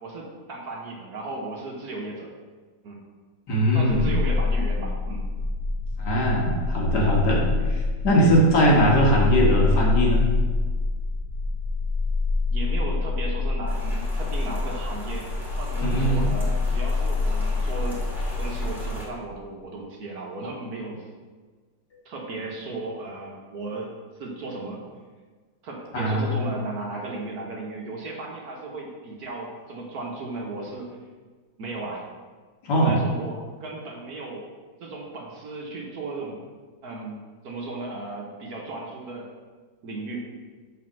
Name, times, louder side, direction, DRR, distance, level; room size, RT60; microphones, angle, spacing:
voice 1, 0.0-2.3 2.8-3.0 3.7-5.2 12.5-15.3 15.6-18.0 18.4-21.0 22.0-24.8 25.6-30.9 31.6-32.0 32.7-34.4 34.8-36.4 36.8-39.3 39.8-40.3, right 2 dB, 60° right, -1 dB, 1.4 m, -35 dB
voice 2, 3.5-4.1 6.0-10.3 15.8-16.3 25.9-26.4 32.6-33.0, equal, 60° left, -3 dB, 2.0 m, -21 dB
sound 1, 3.9-19.1, left 3 dB, 75° left, 1.8 m, -26 dB
Rain, 13.7-19.0, left 1 dB, ahead, 1.8 m, -40 dB
6.5 x 4.2 x 6.1 m, 1.4 s
omnidirectional pair, 2.0 m